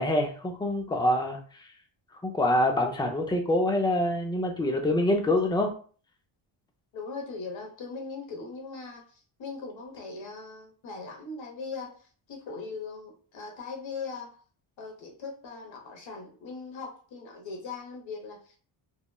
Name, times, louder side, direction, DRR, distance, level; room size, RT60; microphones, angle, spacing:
voice 1, 0.0-1.4 2.2-5.7, left 1 dB, 10° left, 3 dB, 0.4 m, -25 dB
voice 2, 6.9-14.3 14.8-18.6, left 4 dB, 65° left, 2 dB, 1.0 m, -40 dB
3.0 x 2.1 x 2.2 m, 0.42 s
cardioid pair, 100°, 49 cm